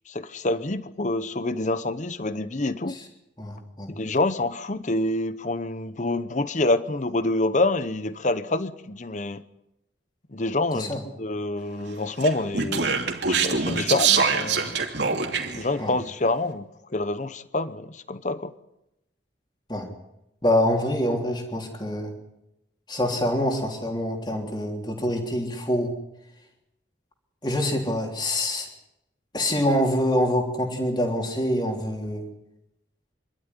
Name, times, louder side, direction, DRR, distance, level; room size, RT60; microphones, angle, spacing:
voice 1, 0.1-3.0 3.9-9.4 10.3-12.9 13.3-14.7 15.5-18.5, left 2 dB, 40° left, 13 dB, 0.9 m, -27 dB
voice 2, 3.4-3.9 10.7-11.0 15.8-15.9 19.7-19.9 20.4-22.1 22.9-25.9 27.4-28.7 29.3-32.2, left 1 dB, 25° left, 2 dB, 3.3 m, -25 dB
Speech, 12.2-15.6, right 5 dB, 70° right, 2.7 m, -24 dB
26.0 x 12.5 x 9.8 m, 0.89 s
head